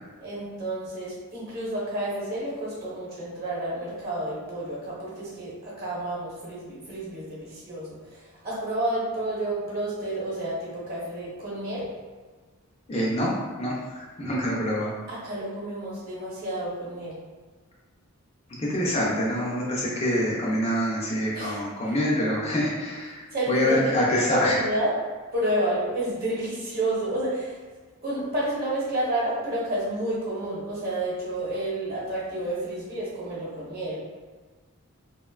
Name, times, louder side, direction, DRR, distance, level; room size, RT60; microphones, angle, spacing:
voice 1, 0.2-11.9 15.1-17.2 21.3-21.9 23.3-24.9 25.3-27.6 28.0-34.0, right 1 dB, 40° right, -7 dB, 0.9 m, -30 dB
voice 2, 12.9-15.0 18.6-24.6, equal, 25° left, -6 dB, 0.4 m, -26 dB
2.9 x 2.1 x 2.3 m, 1.4 s
head